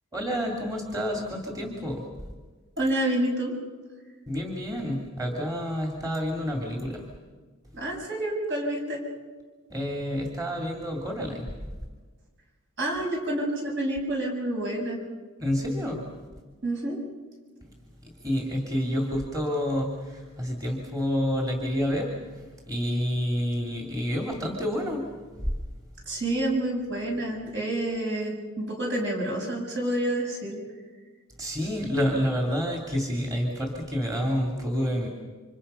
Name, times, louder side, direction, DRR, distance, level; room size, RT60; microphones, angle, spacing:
voice 1, 0.1-2.1 4.3-7.1 9.7-11.5 15.4-16.1 18.0-25.0 25.4-25.5 31.4-35.1, equal, 15° right, 0 dB, 2.7 m, -29 dB
voice 2, 2.8-3.5 7.7-9.0 12.8-15.0 16.6-17.0 26.1-30.6, right 1 dB, 50° right, 0 dB, 6.7 m, -28 dB
29.5 x 26.0 x 5.7 m, 1.4 s
head